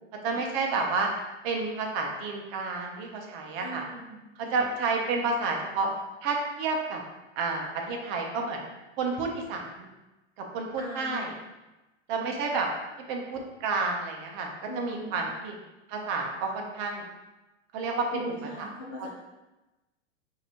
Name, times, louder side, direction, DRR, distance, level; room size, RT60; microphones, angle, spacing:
voice 1, 0.2-1.1 1.4-3.8 4.4-5.9 6.2-7.0 7.4-8.6 9.0-9.9 10.5-11.3 12.1-12.7 13.1-15.5 15.9-17.0 17.7-18.2 18.6-18.7 19.0-19.1, right 4 dB, 35° right, 1 dB, 0.8 m, -30 dB
voice 2, 3.6-4.6 10.8-11.3 12.2-12.3 14.7-15.4 18.1-19.1, equal, 15° left, -5 dB, 0.3 m, -40 dB
5.7 x 2.8 x 3.0 m, 1.0 s
hypercardioid pair, 130°, 37 cm